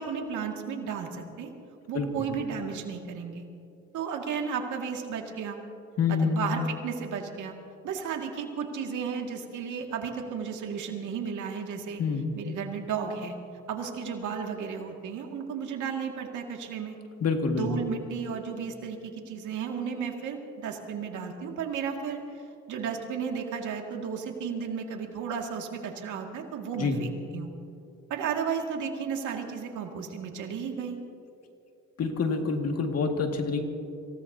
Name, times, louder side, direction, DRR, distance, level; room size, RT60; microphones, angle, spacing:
voice 1, 0.0-1.5 1.9-3.5 3.9-5.6 6.1-7.5 7.8-12.0 12.3-13.4 13.7-17.0 17.5-22.2 22.7-27.5 28.1-31.0, right 6 dB, 80° right, 2 dB, 2.1 m, -33 dB
voice 2, 6.0-6.5 12.0-12.3 17.2-17.7 26.8-27.0 32.0-33.6, left 5 dB, 55° left, 3 dB, 2.0 m, -27 dB
26.0 x 17.0 x 2.8 m, 2.7 s
cardioid pair, 90°, 30 cm